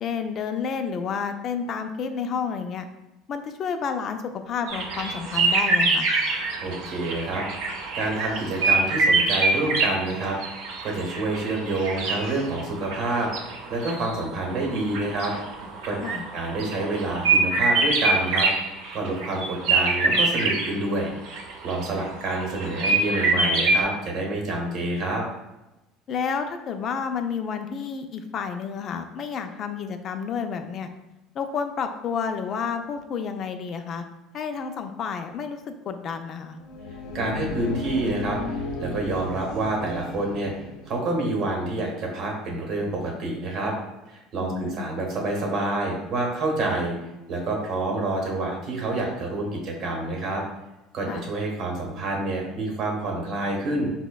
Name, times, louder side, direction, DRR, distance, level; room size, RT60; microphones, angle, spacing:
voice 1, 0.0-2.8 3.3-6.1 16.0-16.2 26.1-30.9 31.3-34.0 34.3-36.6 44.4-44.8 51.1-51.3, left 6 dB, 45° left, 7 dB, 0.3 m, -30 dB
sound 1, 4.7-20.8 21.3-23.8, right 3 dB, 80° right, 0.6 m, -24 dB
voice 2, 6.6-7.4 7.9-10.6 10.8-13.3 13.7-15.3 15.8-15.9 16.3-18.5 18.9-21.1 21.6-25.2 37.1-40.5 40.9-43.7 44.1-47.0 47.3-50.4 50.9-53.9, right 2 dB, 50° right, 0 dB, 0.8 m, -28 dB
sound 2, 36.5-41.2, left 3 dB, 90° left, 0.6 m, -34 dB
4.9 x 2.1 x 2.2 m, 1.0 s
supercardioid pair, 115°, 0 cm